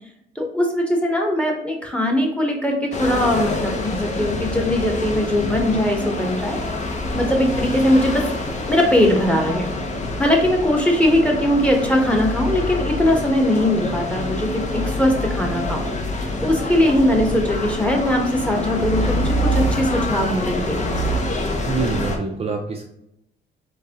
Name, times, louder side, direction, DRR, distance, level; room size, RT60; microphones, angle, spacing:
voice 1, 0.3-6.6 7.1-8.3 8.7-9.7 10.2-20.8, left 1 dB, 5° left, 1 dB, 1.0 m, -20 dB
sound 1, 2.9-22.2, left 1 dB, 35° left, 0.8 m, -26 dB
voice 2, 21.7-22.8, right 4 dB, 30° right, 2 dB, 0.5 m, -25 dB
3.9 x 3.3 x 2.9 m, 0.80 s
cardioid pair, 90°, 20 cm